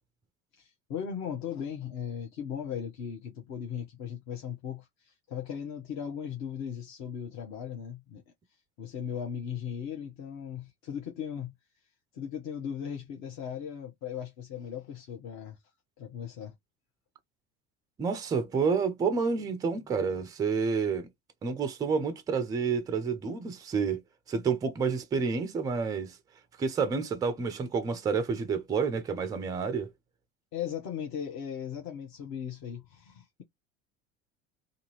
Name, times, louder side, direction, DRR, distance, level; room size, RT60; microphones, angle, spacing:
voice 1, 0.5-8.2 8.8-11.5 12.1-15.6 16.0-16.5 30.5-33.4, left 8 dB, 40° left, 0.8 m, -37 dB
voice 2, 18.0-21.1 21.4-24.0 24.3-26.2 26.6-29.9, right 5 dB, 10° right, 0.3 m, -29 dB
2.6 x 2.5 x 2.9 m
figure-of-eight pair, 70°, 43 cm